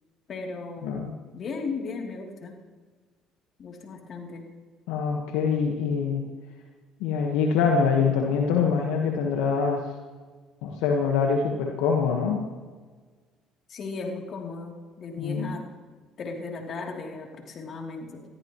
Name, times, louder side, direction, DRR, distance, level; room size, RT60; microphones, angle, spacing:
voice 1, 0.3-1.1 1.3-2.6 3.6-4.5 13.7-15.6 16.2-18.2, left 4 dB, 50° left, 1 dB, 3.1 m, -36 dB
voice 2, 0.8-1.1 4.9-6.2 7.0-9.8 10.6-12.4 15.2-15.5, left 5 dB, 85° left, 1 dB, 1.4 m, -24 dB
20.5 x 14.0 x 3.1 m, 1.4 s
supercardioid pair, 75°, 0 cm